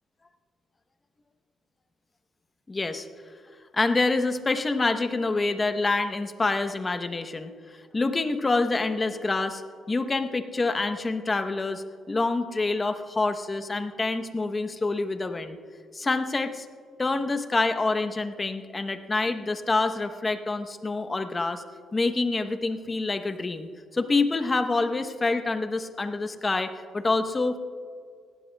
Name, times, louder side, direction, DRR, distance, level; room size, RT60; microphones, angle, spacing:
voice 1, 2.7-3.1 3.7-7.5 7.9-9.6 9.9-15.6 15.9-16.7 17.0-21.6 21.9-27.6, left 3 dB, 25° left, 8 dB, 0.8 m, -27 dB
19.5 x 16.0 x 2.3 m, 2.1 s
cardioid pair, 90°, 0 cm